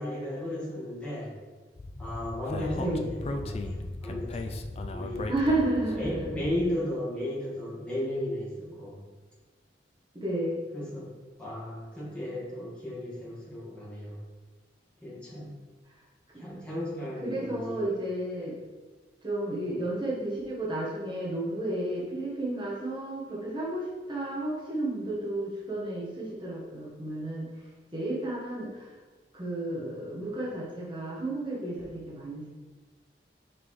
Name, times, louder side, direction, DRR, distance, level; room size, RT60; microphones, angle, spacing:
voice 1, 0.0-1.3 2.0-3.8 4.0-4.6 4.9-5.3 6.0-9.0 10.7-11.1 11.4-14.2 15.0-15.6 16.4-17.8, left 1 dB, 5° left, -8 dB, 1.8 m, -35 dB
Speech, 1.8-6.7, left 2 dB, 35° left, 0.3 m, -37 dB
voice 2, 5.3-6.3 10.1-10.6 17.2-18.5 19.2-27.5 27.9-28.9 29.3-32.5, right 1 dB, 25° right, -7 dB, 1.4 m, -32 dB
5.9 x 5.3 x 3.2 m, 1.3 s
head